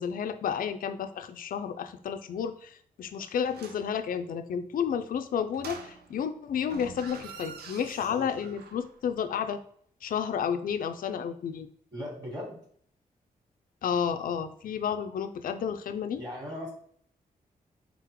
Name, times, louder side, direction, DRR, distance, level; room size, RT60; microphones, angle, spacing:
voice 1, 0.0-9.6 10.0-11.7 13.8-16.2, left 7 dB, 60° left, 9 dB, 0.4 m, -31 dB
sound 1, 3.5-3.9 5.5-6.3 6.6-8.9 9.2-9.3, right 5 dB, 90° right, 0.5 m, -45 dB
voice 2, 11.9-12.6 16.2-16.7, left 1 dB, 25° right, -4 dB, 1.7 m, -38 dB
3.9 x 3.7 x 3.0 m, 0.62 s
cardioid pair, 55°, 16 cm